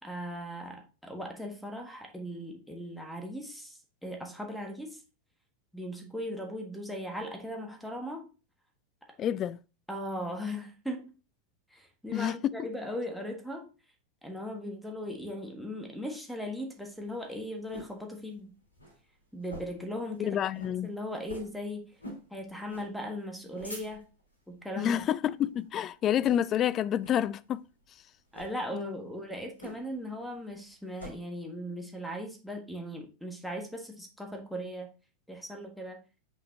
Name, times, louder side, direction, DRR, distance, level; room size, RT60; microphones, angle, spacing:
voice 1, 0.0-5.0 5.7-8.3 9.9-11.1 11.7-13.7 14.2-18.5 19.3-20.4 20.8-21.9 22.3-24.0 24.5-24.9 28.3-34.9 35.3-36.0, equal, ahead, 1.5 m, -38 dB
voice 2, 9.2-9.6 12.1-12.7 20.2-20.9 24.8-27.6 28.7-29.0, left 10 dB, 30° left, 0.3 m, -29 dB
sound 1, 16.8-18.0 18.4-18.5 18.7-19.0 19.4-19.9 20.2-20.3 20.5-20.8 21.2-21.6 22.0-22.3 22.7-22.9 23.3-24.2 24.8-25.1 25.5-25.8 26.2-26.6 27.0-27.2 28.2-28.5 29.6-30.0 30.4-31.1, equal, 80° left, 2.9 m, -45 dB
5.8 x 4.9 x 3.8 m
figure-of-eight pair, 90°, 0 cm